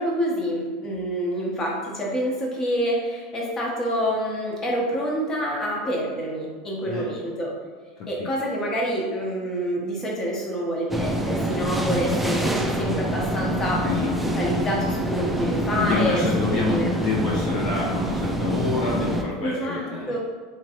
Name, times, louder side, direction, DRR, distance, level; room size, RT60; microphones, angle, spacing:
voice 1, 0.0-7.5 8.1-16.9 19.4-20.2, equal, 25° left, -2 dB, 0.9 m, -27 dB
sound 1, 10.9-19.2, equal, 5° right, 0.3 m, -26 dB
voice 2, 13.8-14.2 15.7-20.2, left 3 dB, 50° left, -3 dB, 0.6 m, -27 dB
3.7 x 2.9 x 2.9 m, 1.6 s
supercardioid pair, 130°, 2 cm